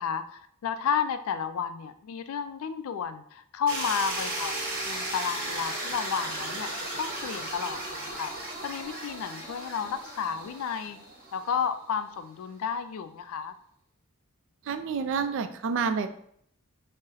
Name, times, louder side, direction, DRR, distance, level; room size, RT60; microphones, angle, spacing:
voice 1, 0.0-8.3 8.6-11.0 11.3-13.5, left 7 dB, 70° left, 11 dB, 0.3 m, -32 dB
sound 1, 3.7-11.7, right 1 dB, 40° right, 1.0 m, -35 dB
voice 2, 14.7-16.1, right 5 dB, 60° right, 9 dB, 0.3 m, -28 dB
4.0 x 2.0 x 3.8 m, 0.67 s
head